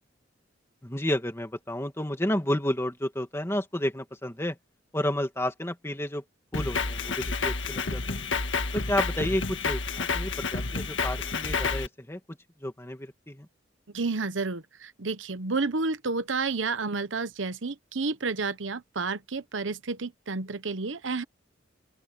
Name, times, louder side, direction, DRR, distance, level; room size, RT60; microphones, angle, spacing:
voice 1, 0.8-4.6 4.9-6.2 6.5-8.3 8.7-12.2 12.6-13.5, left 1 dB, 15° left, 2.4 m, -31 dB
Drum kit, 6.5-11.9, left 4 dB, 85° left, 1.7 m, -30 dB
voice 2, 13.9-21.2, right 4 dB, 90° right, 1.0 m, -30 dB
open air
head